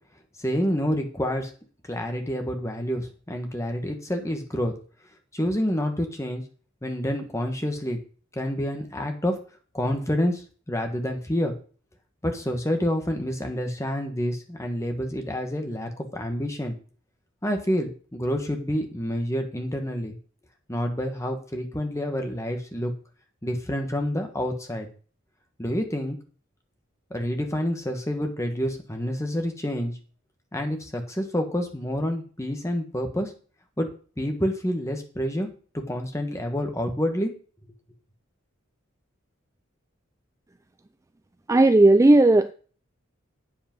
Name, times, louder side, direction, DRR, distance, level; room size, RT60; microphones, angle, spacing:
voice 1, 0.4-1.5 1.9-4.7 5.3-6.4 6.8-8.0 8.3-9.3 9.7-10.4 10.7-11.5 12.2-16.7 17.4-20.2 20.7-22.9 23.4-24.9 25.6-26.2 27.1-29.9 30.5-33.3 33.8-33.9 34.2-35.5 35.7-37.3, equal, 15° left, 4 dB, 1.6 m, -28 dB
voice 2, 41.5-42.5, right 2 dB, 15° right, 10 dB, 0.3 m, -15 dB
8.7 x 7.6 x 5.4 m, 0.40 s
head